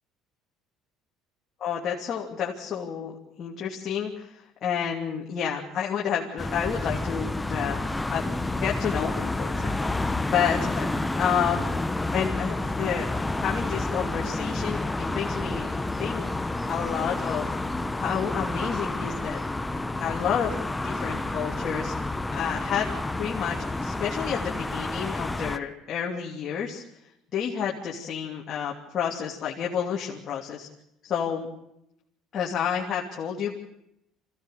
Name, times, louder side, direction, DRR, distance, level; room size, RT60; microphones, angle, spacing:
voice 1, 1.6-10.9 11.2-11.7 12.1-13.1 13.4-17.5 18.0-19.4 20.0-21.9 22.3-22.9 23.2-26.8 27.3-30.7 31.0-31.5 32.3-33.6, left 8 dB, 45° left, -2 dB, 3.0 m, -30 dB
sound 1, 6.4-25.6, left 2 dB, 10° left, 0.9 m, -29 dB
25.5 x 16.5 x 6.7 m, 0.81 s
cardioid pair, 115°, 0 cm